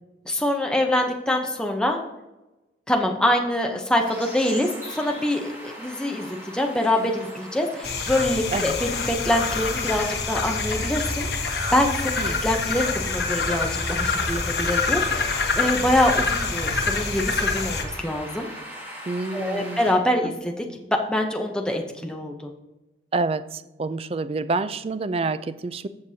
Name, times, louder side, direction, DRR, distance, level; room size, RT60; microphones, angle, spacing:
voice 1, 0.3-2.0 2.9-12.1 12.4-18.5 19.3-22.5, left 1 dB, 5° left, 2 dB, 0.7 m, -25 dB
sound 1, 4.0-19.9, equal, 15° right, 2.4 m, -40 dB
sound 2, 7.8-17.8, left 4 dB, 65° left, 1.3 m, -26 dB
voice 2, 19.1-19.9 20.2-20.3 23.1-25.9, right 3 dB, 35° right, 13 dB, 0.4 m, -28 dB
14.5 x 6.6 x 2.8 m, 1.0 s
head